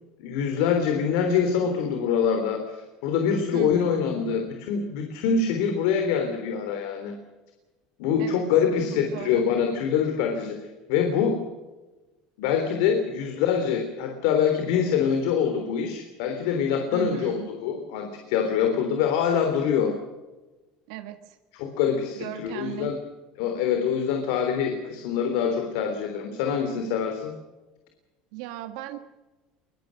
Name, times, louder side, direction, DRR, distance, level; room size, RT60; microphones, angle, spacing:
voice 1, 0.2-7.1 8.0-11.4 12.4-19.9 21.5-23.0 23.4-27.3, left 7 dB, 80° left, 5 dB, 3.6 m, -25 dB
voice 2, 3.5-4.1 8.2-8.4 8.9-9.5 16.9-17.5 20.9-21.4 22.2-22.9 28.3-29.0, right 13 dB, 80° right, 7 dB, 1.6 m, -37 dB
23.0 x 22.5 x 6.5 m, 1.2 s
supercardioid pair, 120°, 3 cm